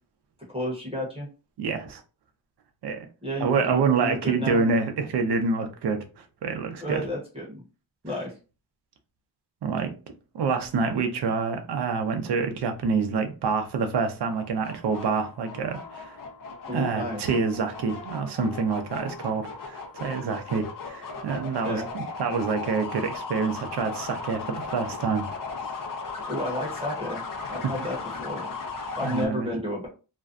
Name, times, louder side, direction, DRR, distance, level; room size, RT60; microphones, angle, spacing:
voice 1, 0.5-1.3 3.2-4.6 6.8-7.6 8.0-8.3 16.7-17.2 21.6-21.9 26.3-28.5 29.0-29.9, left 1 dB, 15° right, 0.8 m, -32 dB
voice 2, 1.6-2.0 2.8-3.1 3.4-6.0 6.4-7.0 9.6-9.9 10.3-16.2 16.7-25.2 29.0-29.5, right 5 dB, 65° right, 0.6 m, -27 dB
sound 1, 14.3-29.3, left 4 dB, 50° left, 0.6 m, -37 dB
2.5 x 2.2 x 2.4 m
wide cardioid pair, 115°, 44 cm